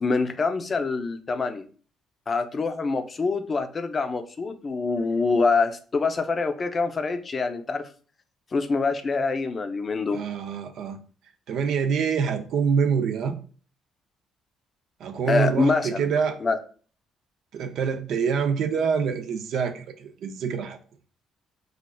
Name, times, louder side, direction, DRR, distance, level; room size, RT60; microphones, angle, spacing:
voice 1, 0.0-1.6 2.3-7.9 8.5-10.2 15.3-16.0 16.4-16.6, left 4 dB, 35° left, 7 dB, 0.5 m, -25 dB
voice 2, 10.1-11.0 11.5-13.4 15.0-16.4 17.5-20.8, right 6 dB, 70° right, 7 dB, 0.4 m, -26 dB
4.2 x 2.4 x 2.2 m, 0.41 s
supercardioid pair, 75°, 0 cm